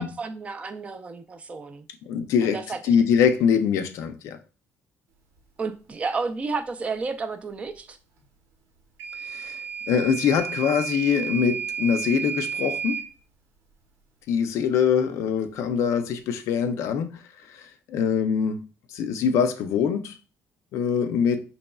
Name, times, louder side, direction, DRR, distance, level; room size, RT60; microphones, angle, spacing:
voice 1, 0.0-1.9 2.4-3.0 5.6-8.0, right 4 dB, 25° right, 0.3 m, -32 dB
voice 2, 2.0-2.6 2.8-4.4 9.3-9.6 9.9-13.0 14.3-17.2 17.5-18.7 18.9-20.2 20.7-21.4, left 7 dB, 75° left, 0.5 m, -23 dB
Microwave oven / Alarm, 9.0-13.1, right 8 dB, 80° right, 0.8 m, -32 dB
4.1 x 3.0 x 2.2 m
cardioid pair, 150°, 5 cm